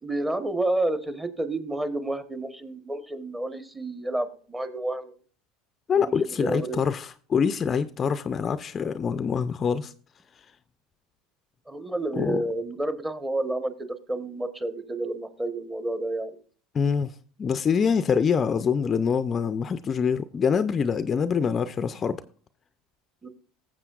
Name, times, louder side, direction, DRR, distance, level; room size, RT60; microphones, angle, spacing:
voice 1, 0.0-5.1 6.0-6.8 11.7-16.3 23.2-23.3, right 2 dB, 15° right, 1.2 m, -30 dB
voice 2, 5.9-9.9 12.2-12.4 16.7-17.1 17.4-22.2, left 6 dB, 35° left, 0.5 m, -25 dB
15.0 x 7.6 x 2.4 m
hypercardioid pair, 90°, 0 cm